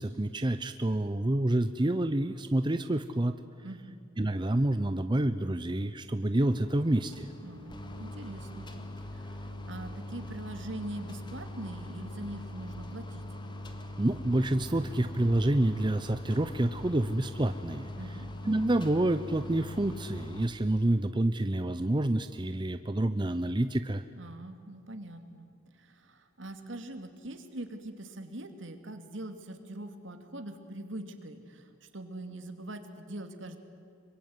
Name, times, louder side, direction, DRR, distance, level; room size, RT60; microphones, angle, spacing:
voice 1, 0.0-3.4 4.2-7.3 14.0-17.9 18.4-24.0, right 1 dB, 25° right, 10 dB, 0.7 m, -28 dB
voice 2, 3.6-4.0 7.4-8.7 9.1-13.2 18.0-18.3 24.2-25.5 25.7-33.6, right 1 dB, 65° right, 7 dB, 2.6 m, -43 dB
sound 1, 6.5-20.5, left 1 dB, 25° left, 2.0 m, -42 dB
26.0 x 23.5 x 9.6 m, 2.4 s
head